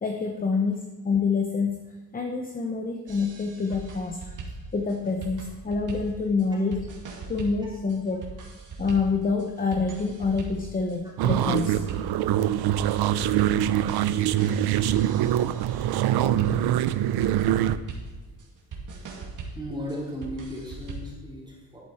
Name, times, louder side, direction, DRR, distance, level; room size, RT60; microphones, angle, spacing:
voice 1, 0.0-1.8 2.1-4.2 4.7-6.9 7.3-8.3 8.8-11.8, left 4 dB, 20° left, 3 dB, 0.9 m, -27 dB
sound 1, 3.1-21.2, right 3 dB, 55° right, 2.3 m, -40 dB
sound 2, 11.2-17.8, right 12 dB, 80° right, 0.6 m, -24 dB
voice 2, 19.5-21.8, equal, 10° right, -5 dB, 3.0 m, -36 dB
11.5 x 8.5 x 4.4 m, 1.2 s
cardioid pair, 130°, 38 cm